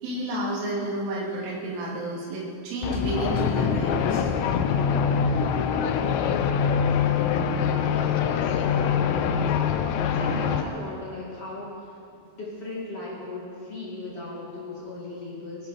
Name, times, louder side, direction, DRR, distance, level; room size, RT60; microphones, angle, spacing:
voice 1, 0.0-4.3, right 1 dB, 75° right, -5 dB, 5.2 m, -30 dB
sound 1, 2.8-10.6, left 7 dB, 80° left, 2.6 m, -24 dB
voice 2, 8.2-9.5 10.1-15.7, left 2 dB, 40° left, -5 dB, 2.2 m, -38 dB
22.0 x 13.0 x 4.9 m, 2.5 s
omnidirectional pair, 5.9 m